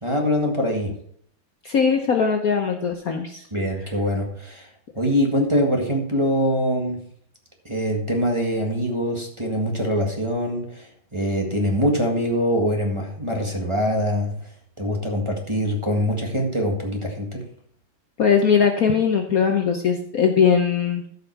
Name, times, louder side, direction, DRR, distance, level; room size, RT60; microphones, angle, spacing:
voice 1, 0.0-0.9 3.5-4.7 4.9-7.0 7.6-10.9 11.1-14.3 14.8-17.4, equal, 15° right, -1 dB, 1.6 m, -23 dB
voice 2, 1.6-3.4 18.2-21.0, left 6 dB, 55° left, 4 dB, 1.1 m, -20 dB
14.0 x 5.6 x 4.6 m, 0.65 s
omnidirectional pair, 2.2 m